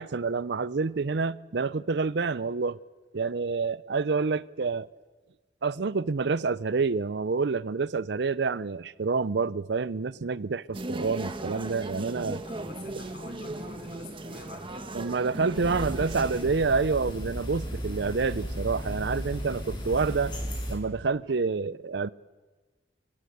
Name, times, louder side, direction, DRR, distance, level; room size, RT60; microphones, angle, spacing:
voice 1, 0.0-2.8 3.1-4.9 5.6-12.4 14.9-20.3 20.7-22.1, right 4 dB, 65° right, 0.6 m, -28 dB
sound 1, 10.7-16.4, right 1 dB, 30° right, 1.3 m, -37 dB
voice 2, 12.4-14.9, left 2 dB, 65° left, 4.9 m, -46 dB
sound 2, 15.5-20.7, equal, 25° left, 5.2 m, -35 dB
27.5 x 15.5 x 8.0 m
head